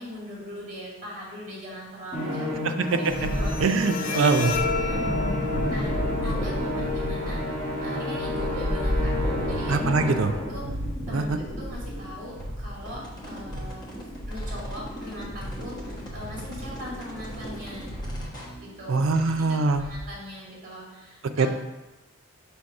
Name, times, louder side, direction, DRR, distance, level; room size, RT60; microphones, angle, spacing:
voice 1, 0.0-3.7 4.0-4.2 4.8-5.1 5.6-5.9 6.2-7.4 7.8-10.7 11.1-13.9 14.3-18.0 18.6-19.1 19.7-21.5, left 1 dB, 35° right, -5 dB, 2.1 m, -40 dB
Musical instrument, 2.1-10.6, left 1 dB, 5° right, 1.7 m, -31 dB
Bowed string instrument, 2.9-9.9, left 3 dB, 40° left, 0.4 m, -34 dB
sound 1, 3.1-20.1, equal, 20° left, 1.1 m, -33 dB
voice 2, 3.6-4.5 9.7-10.3 11.1-11.4 18.9-19.9 21.4-21.5, right 4 dB, 70° right, 8 dB, 0.4 m, -23 dB
6.2 x 3.4 x 5.2 m, 1.1 s
head